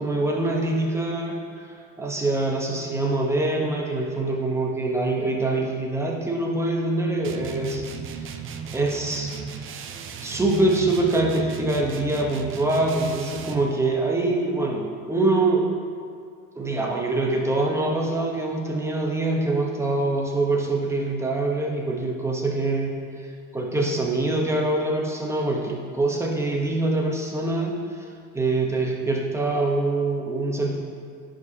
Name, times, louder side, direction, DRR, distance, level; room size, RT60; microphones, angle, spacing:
voice 1, 0.0-7.8 8.1-8.4 8.7-9.3 10.2-15.7 16.6-23.3 23.5-28.0 28.3-30.8, right 2 dB, 10° right, -1 dB, 1.0 m, -24 dB
sound 1, 7.2-13.7, right 6 dB, 40° right, 0.5 m, -35 dB
10.5 x 5.1 x 2.9 m, 2.2 s
supercardioid pair, 105°, 34 cm